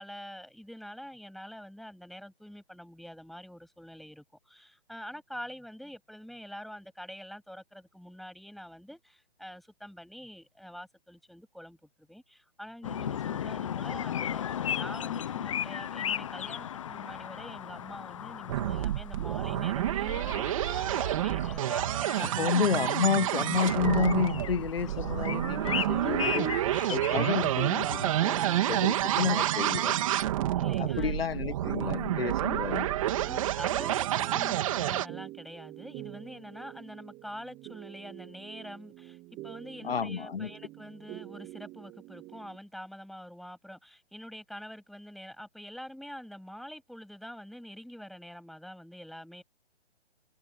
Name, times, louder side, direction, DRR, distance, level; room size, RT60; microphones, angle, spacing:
voice 1, 0.0-11.8 12.1-22.6 29.2-29.5 30.5-31.4 33.2-39.2 39.4-49.4, equal, ahead, 7.7 m, -46 dB
sound 1, 12.8-30.2, left 9 dB, 30° left, 0.9 m, -37 dB
sound 2, 18.5-35.1, right 13 dB, 30° right, 3.2 m, -29 dB
voice 2, 22.2-26.6 26.9-28.4 28.7-30.0 30.8-32.9 39.8-40.5, left 7 dB, 60° left, 1.7 m, -30 dB
sound 3, 25.2-42.6, right 18 dB, 15° right, 5.9 m, -46 dB
hypercardioid pair, 165°, 33 cm